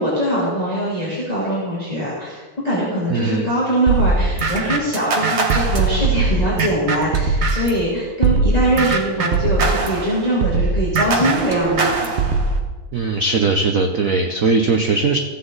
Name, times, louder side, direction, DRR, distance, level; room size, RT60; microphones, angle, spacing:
voice 1, 0.0-12.1, right 1 dB, 20° left, -8 dB, 2.8 m, -22 dB
voice 2, 3.1-3.5 12.9-15.2, right 4 dB, 75° right, 4 dB, 0.7 m, -19 dB
sound 1, 3.9-7.8 8.2-12.6, right 3 dB, 45° right, 0.9 m, -20 dB
15.0 x 7.9 x 4.0 m, 1.3 s
omnidirectional pair, 2.4 m